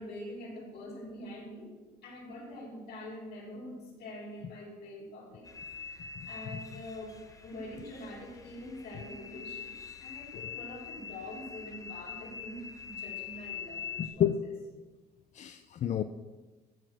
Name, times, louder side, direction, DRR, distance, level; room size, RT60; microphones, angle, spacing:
voice 1, 0.0-1.7 2.0-5.5 5.7-7.2 7.4-9.7 10.0-14.3, left 1 dB, 70° left, -3 dB, 3.8 m, -44 dB
sound 1, 5.4-14.1, left 7 dB, 20° left, 0.9 m, -44 dB
voice 2, 14.0-14.4 15.3-16.0, left 9 dB, 45° left, 9 dB, 0.5 m, -30 dB
13.5 x 4.9 x 6.1 m, 1.2 s
cardioid pair, 110°, 17 cm